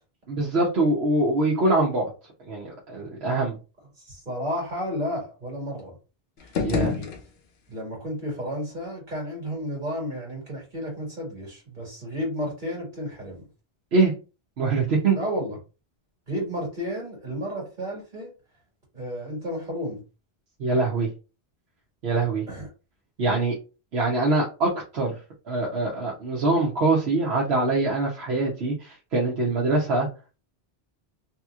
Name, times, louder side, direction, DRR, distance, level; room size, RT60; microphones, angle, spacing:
voice 1, 0.3-2.1 2.4-3.6 6.6-6.9 13.9-14.1 14.6-15.2 20.6-21.1 22.0-22.4 23.2-23.6 23.9-25.2 25.5-30.1, right 2 dB, 85° right, -3 dB, 1.1 m, -23 dB
voice 2, 4.0-6.0 6.4-7.1 7.7-13.5 15.1-15.6 16.3-18.3 18.9-20.0 22.5-22.7, equal, 50° right, -2 dB, 1.9 m, -32 dB
sound 1, 6.4-7.8, left 5 dB, 75° left, 0.8 m, -29 dB
3.4 x 2.9 x 2.4 m, 0.32 s
omnidirectional pair, 1.0 m